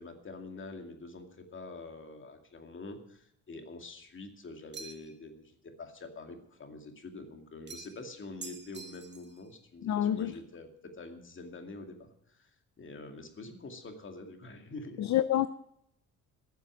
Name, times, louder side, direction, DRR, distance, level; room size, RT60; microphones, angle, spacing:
voice 1, 0.0-12.5 12.8-15.1, left 3 dB, 40° left, 2.3 m, -46 dB
sound 1, 4.7-5.2 7.7-8.1 8.4-9.4, right 5 dB, 35° right, 1.3 m, -46 dB
voice 2, 9.8-10.3 15.0-15.5, left 11 dB, 65° left, 0.6 m, -27 dB
13.5 x 7.2 x 9.0 m
cardioid pair, 90°, 30 cm